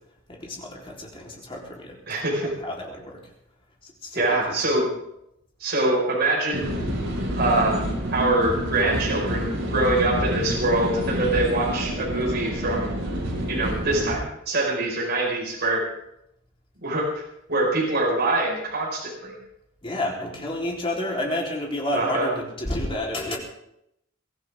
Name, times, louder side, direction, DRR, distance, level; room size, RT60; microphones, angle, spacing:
voice 1, 0.3-2.0 2.4-3.2 4.0-4.6 19.8-23.4, left 1 dB, 25° left, -2 dB, 4.0 m, -30 dB
voice 2, 2.1-2.5 4.1-4.9 5.6-6.8 7.4-7.8 8.1-12.9 13.5-15.8 16.8-17.1 17.5-19.3 21.9-22.3, right 2 dB, 50° right, -3 dB, 5.4 m, -24 dB
sound 1, 6.5-14.2, equal, 70° right, 5.5 m, -28 dB
23.5 x 14.0 x 3.7 m, 0.78 s
head